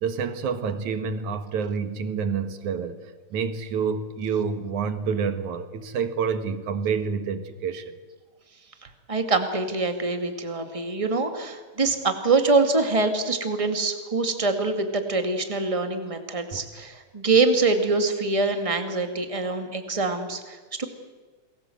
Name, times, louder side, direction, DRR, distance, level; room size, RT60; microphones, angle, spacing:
voice 1, 0.0-8.0 16.5-16.9, right 6 dB, 65° right, 10 dB, 2.8 m, -28 dB
voice 2, 9.1-20.8, right 3 dB, 15° right, 6 dB, 1.6 m, -24 dB
28.5 x 21.5 x 7.9 m, 1.4 s
omnidirectional pair, 3.7 m